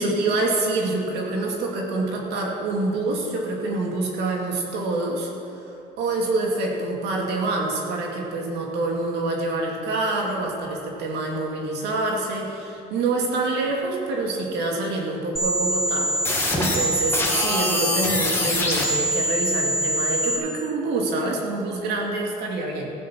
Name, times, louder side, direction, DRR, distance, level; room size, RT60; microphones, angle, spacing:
voice 1, 0.0-5.3 5.6-22.9, right 2 dB, 80° right, 0 dB, 2.5 m, -26 dB
sound 1, 15.4-20.4, equal, 15° left, 2.4 m, -23 dB
15.5 x 7.8 x 6.0 m, 2.6 s
cardioid pair, 110°, 17 cm